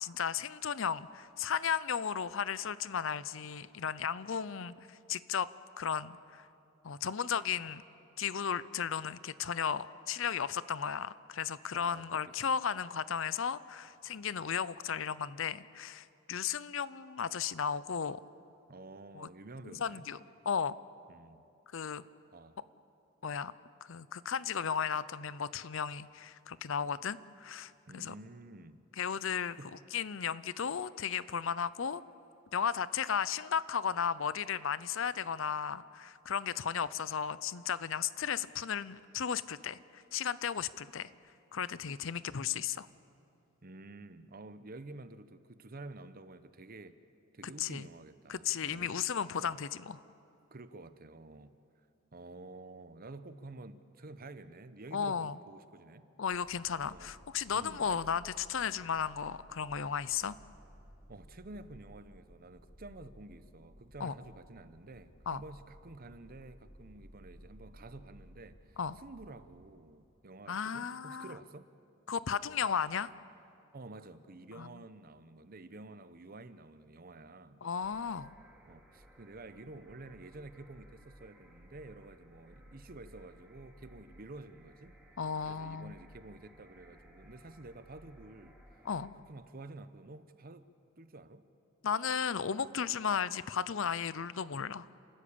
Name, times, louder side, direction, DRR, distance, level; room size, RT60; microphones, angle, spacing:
voice 1, 0.0-5.5 5.8-6.5 6.8-7.8 8.2-18.2 19.1-19.3 19.8-20.2 20.5-20.8 21.7-22.0 23.2-23.5 23.9-28.1 29.0-29.6 29.9-32.0 32.5-41.1 41.5-42.9 47.6-47.9 48.3-50.0 54.9-55.4 56.2-60.3 64.0-64.1 65.3-65.4 68.8-69.0 70.5-71.3 72.1-73.1 74.6-74.7 77.6-78.3 85.2-85.9 88.8-89.1 91.8-94.9, left 7 dB, 65° left, 17 dB, 0.6 m, -35 dB
voice 2, 11.7-12.4 14.2-14.3 18.7-20.1 21.1-21.4 22.3-22.6 27.9-28.8 29.6-29.7 43.6-47.0 47.3-49.0 49.4-49.6 50.5-51.5 52.1-56.1 56.9-57.1 57.5-58.1 61.1-71.7 73.7-77.7 78.7-85.0 85.4-88.6 89.1-90.7 91.0-91.4, right 2 dB, 45° right, 12 dB, 0.9 m, -50 dB
sound 1, 56.3-69.7, equal, 40° left, 4.3 m, -57 dB
sound 2, 77.8-89.1, equal, 5° right, 2.4 m, -59 dB
30.0 x 13.5 x 8.7 m, 2.6 s
head